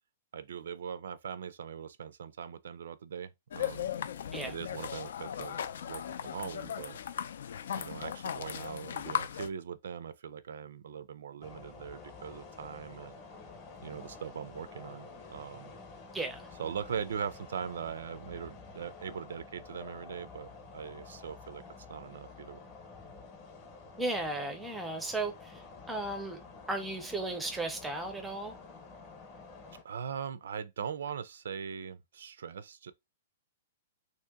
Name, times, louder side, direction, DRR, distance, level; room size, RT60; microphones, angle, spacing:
voice 1, 0.3-3.9 4.4-7.0 7.7-13.2 13.8-15.7 16.6-21.6 21.9-22.6 29.8-32.9, right 7 dB, 70° right, 0.4 m, -41 dB
sound 1, 3.5-9.5, left 9 dB, 65° left, 0.4 m, -37 dB
sound 2, 11.4-29.8, left 4 dB, 20° left, 0.8 m, -50 dB
voice 2, 16.1-16.5 24.0-26.4 26.7-28.6, right 2 dB, 5° right, 0.5 m, -35 dB
2.9 x 2.8 x 3.5 m
hypercardioid pair, 175°, 0 cm